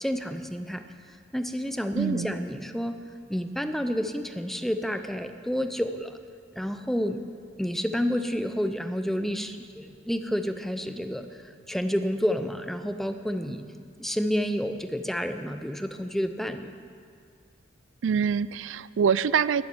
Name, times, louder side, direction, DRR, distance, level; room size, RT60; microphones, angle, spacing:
voice 1, 0.0-0.8 1.3-3.0 3.3-6.1 6.6-7.2 7.6-11.3 11.7-13.6 14.0-16.7, equal, ahead, 8 dB, 0.6 m, -29 dB
voice 2, 1.9-2.3 18.0-19.6, right 7 dB, 90° right, 18 dB, 0.4 m, -25 dB
14.0 x 7.6 x 9.9 m, 2.2 s
head